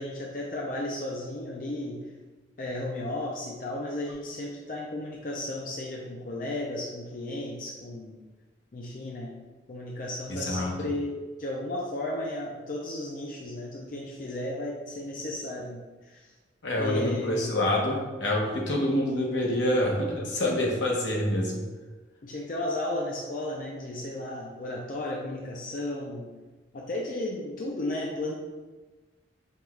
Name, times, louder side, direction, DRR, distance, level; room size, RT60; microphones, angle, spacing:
voice 1, 0.0-2.0 2.6-8.2 8.7-9.3 9.7-15.8 16.1-16.3 16.8-17.5 22.2-26.3 26.7-28.3, left 1 dB, 45° left, -2 dB, 0.4 m, -34 dB
voice 2, 10.3-10.7 16.6-21.6, left 1 dB, 80° left, -1 dB, 0.8 m, -26 dB
5.4 x 2.3 x 3.1 m, 1.2 s
head